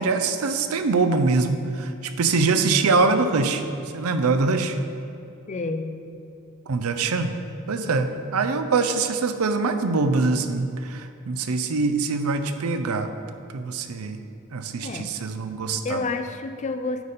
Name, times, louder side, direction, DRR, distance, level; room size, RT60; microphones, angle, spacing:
voice 1, 0.0-3.6 3.9-4.8 6.7-7.4 7.7-13.1 13.5-14.2 14.5-16.0, right 4 dB, 80° right, 8 dB, 0.5 m, -23 dB
voice 2, 5.5-6.1 14.8-15.1 15.8-17.0, left 3 dB, 35° left, 8 dB, 0.4 m, -29 dB
9.5 x 4.1 x 5.1 m, 2.7 s
head